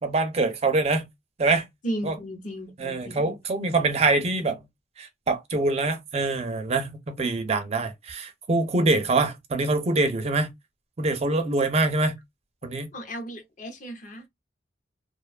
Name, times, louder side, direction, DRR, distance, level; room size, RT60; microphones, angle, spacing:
voice 1, 0.0-1.1 1.4-1.7 2.0-2.2 2.8-4.6 5.0-10.5 11.0-12.2 12.6-12.9, right 2 dB, 35° right, 0.4 m, -24 dB
voice 2, 1.8-3.4 12.9-14.2, right 1 dB, 45° left, 0.7 m, -35 dB
2.5 x 2.2 x 2.3 m
head